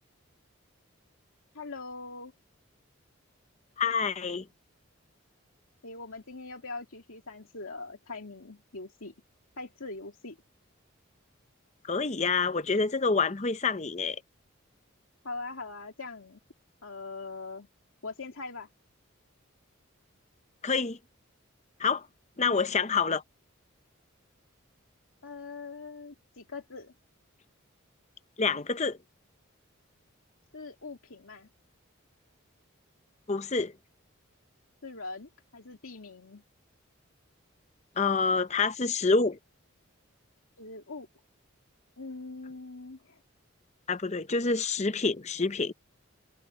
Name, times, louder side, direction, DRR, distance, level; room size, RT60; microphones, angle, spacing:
voice 1, 1.5-2.3 5.8-9.1 9.6-10.4 15.2-16.4 16.8-17.7 18.0-18.7 22.4-22.6 25.2-26.9 30.5-31.5 34.8-36.4 40.6-41.1 42.0-43.2, left 3 dB, 80° left, 2.4 m, -42 dB
voice 2, 3.8-4.5 11.8-14.2 20.6-21.0 21.8-22.1 22.4-23.2 28.4-29.0 33.3-33.7 38.0-39.4 43.9-45.7, left 4 dB, 30° left, 0.7 m, -27 dB
head